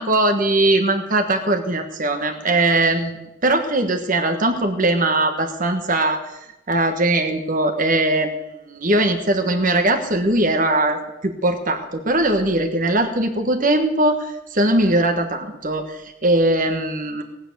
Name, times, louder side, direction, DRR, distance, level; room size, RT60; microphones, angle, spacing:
voice 1, 0.0-6.4 6.7-17.2, right 2 dB, 45° right, 5 dB, 1.5 m, -20 dB
18.5 x 9.0 x 6.9 m, 0.94 s
head